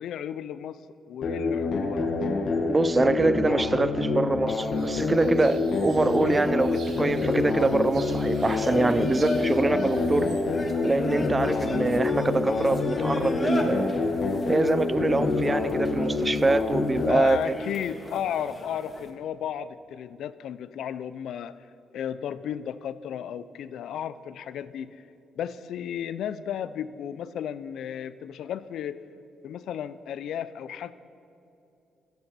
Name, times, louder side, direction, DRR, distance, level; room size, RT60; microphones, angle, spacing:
voice 1, 0.0-2.2 17.1-21.6 21.9-25.0 25.4-29.0 29.4-30.9, left 9 dB, 75° left, 0.4 m, -34 dB
sound 1, 1.2-17.2, left 3 dB, 55° left, 1.3 m, -27 dB
voice 2, 2.7-10.3 10.8-14.0 14.5-17.5, right 2 dB, 20° right, 0.4 m, -24 dB
sound 2, 4.5-10.4, right 5 dB, 65° right, 1.8 m, -50 dB
sound 3, 6.6-19.1, left 1 dB, 30° left, 1.6 m, -37 dB
15.5 x 12.0 x 4.2 m
cardioid pair, 90°, 0 cm